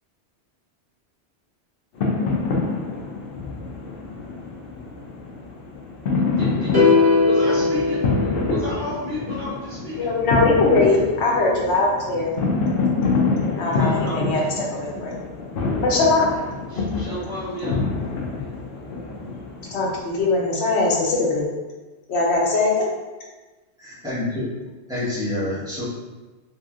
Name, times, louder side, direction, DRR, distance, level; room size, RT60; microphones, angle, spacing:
sound 1, 2.0-20.0, left 3 dB, 65° left, 0.7 m, -26 dB
voice 1, 6.4-6.8 7.2-10.1 13.7-14.5 16.7-18.1, left 1 dB, 50° right, -8 dB, 1.1 m, -32 dB
sound 2, 6.7-9.0, left 3 dB, 25° right, 0.7 m, -19 dB
voice 2, 10.0-12.3 13.6-15.1 15.8-16.5 19.7-21.5 22.1-22.9, left 3 dB, 80° left, -2 dB, 0.9 m, -21 dB
voice 3, 23.8-24.4 24.9-25.8, left 1 dB, 5° right, -11 dB, 1.1 m, -27 dB
3.0 x 2.8 x 2.4 m, 1.2 s
omnidirectional pair, 1.1 m